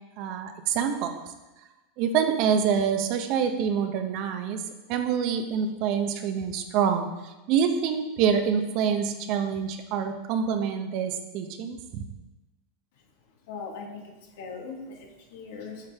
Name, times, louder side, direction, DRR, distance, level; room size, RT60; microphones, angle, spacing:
voice 1, 0.2-1.2 2.0-4.6 4.9-12.0, right 7 dB, 55° right, 6 dB, 0.8 m, -26 dB
voice 2, 13.5-15.9, left 4 dB, 70° left, 0 dB, 1.5 m, -40 dB
8.2 x 5.4 x 3.5 m, 1.1 s
hypercardioid pair, 95°, 0 cm